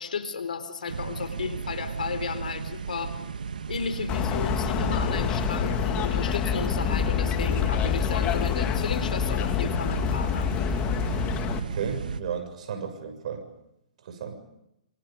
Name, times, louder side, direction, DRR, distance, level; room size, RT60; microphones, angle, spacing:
voice 1, 0.0-3.2 3.7-10.5, left 5 dB, 75° left, 10 dB, 4.1 m, -34 dB
sound 1, 0.9-12.2, right 6 dB, 80° right, 1.8 m, -34 dB
sound 2, 4.1-11.6, left 9 dB, 25° left, 2.3 m, -27 dB
voice 2, 11.5-13.4 14.1-14.4, right 7 dB, 60° right, 7 dB, 7.1 m, -34 dB
27.5 x 27.0 x 5.4 m, 0.84 s
hypercardioid pair, 140°, 4 cm